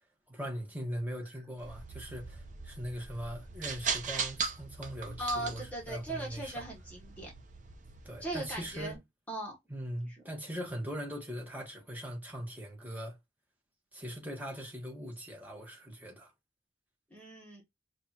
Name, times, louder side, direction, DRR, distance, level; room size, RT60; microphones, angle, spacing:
voice 1, 0.3-6.6 8.0-9.0 9.7-13.2 13.9-16.3, equal, 10° right, 1.3 m, -40 dB
sound 1, 1.6-9.0, right 5 dB, 45° right, 0.8 m, -40 dB
voice 2, 5.2-7.3 8.2-9.0 9.3-9.6 17.1-17.6, right 1 dB, 10° left, 1.1 m, -38 dB
5.1 x 2.4 x 2.8 m
head